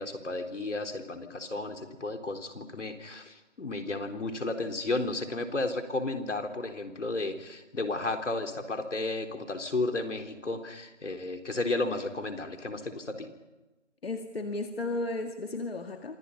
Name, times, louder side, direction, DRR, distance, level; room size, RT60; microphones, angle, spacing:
voice 1, 0.0-13.3, left 2 dB, 80° left, 5 dB, 3.9 m, -33 dB
voice 2, 14.0-16.2, left 2 dB, 55° left, 5 dB, 2.1 m, -34 dB
27.5 x 26.5 x 5.6 m, 1.1 s
figure-of-eight pair, 175°, 36 cm